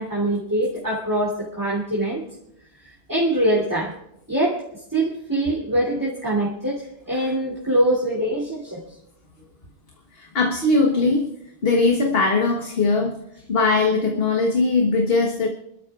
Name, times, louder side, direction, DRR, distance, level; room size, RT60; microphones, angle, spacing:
voice 1, 0.0-2.2 3.1-3.9 4.3-4.6 4.9-6.8 7.1-8.8, right 1 dB, 20° right, -6 dB, 3.0 m, -23 dB
voice 2, 10.2-11.3 11.6-13.1 13.5-15.5, left 3 dB, 70° left, 1 dB, 1.5 m, -20 dB
27.0 x 13.0 x 2.4 m, 0.81 s
omnidirectional pair, 1.0 m